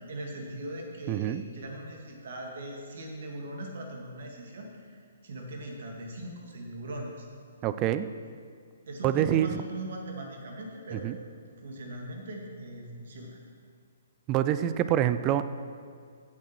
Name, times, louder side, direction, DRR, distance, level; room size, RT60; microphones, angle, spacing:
voice 1, 0.1-7.3 8.9-11.1 11.6-13.4, right 1 dB, 60° right, 1 dB, 2.2 m, -40 dB
voice 2, 1.1-1.4 7.6-8.1 9.0-9.6 10.9-11.2 14.3-15.4, right 12 dB, 30° right, 12 dB, 0.5 m, -26 dB
16.5 x 7.5 x 4.6 m, 2.1 s
figure-of-eight pair, 125°, 0 cm